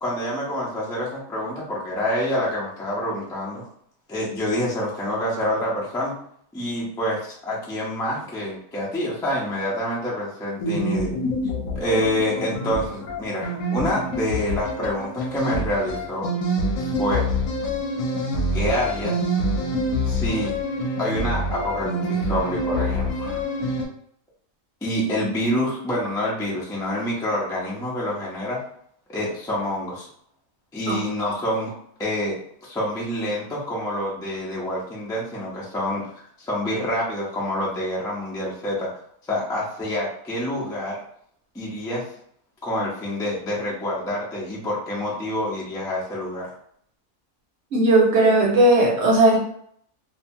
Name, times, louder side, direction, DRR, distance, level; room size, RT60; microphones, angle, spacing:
voice 1, 0.0-3.6 4.1-6.1 6.5-11.1 11.7-16.3 16.8-17.3 18.5-19.2 20.0-20.6 21.0-23.4 24.8-28.6 29.1-30.1 30.7-31.7 32.0-36.1 36.4-38.9 39.3-41.0 41.5-42.0 42.6-46.5, left 1 dB, 5° left, -6 dB, 0.3 m, -27 dB
sound 1, 10.6-23.8, equal, 75° left, 1.0 m, -26 dB
voice 2, 47.7-49.4, right 2 dB, 55° right, -2 dB, 0.9 m, -17 dB
2.7 x 2.3 x 2.7 m, 0.66 s
omnidirectional pair, 1.5 m